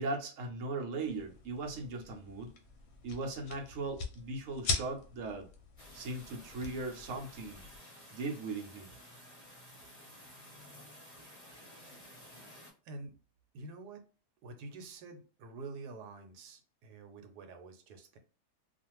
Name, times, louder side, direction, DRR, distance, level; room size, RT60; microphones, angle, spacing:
voice 1, 0.0-2.5 3.0-5.5 5.9-7.7 8.1-8.9, right 3 dB, 65° right, 2 dB, 0.9 m, -38 dB
sound 1, 1.0-7.8, left 4 dB, 70° left, 1.0 m, -42 dB
sound 2, 5.8-12.7, equal, 30° left, 0.8 m, -54 dB
voice 2, 13.5-14.0 14.4-18.2, right 3 dB, 80° right, 6 dB, 1.2 m, -47 dB
2.4 x 2.4 x 2.9 m, 0.38 s
omnidirectional pair, 1.7 m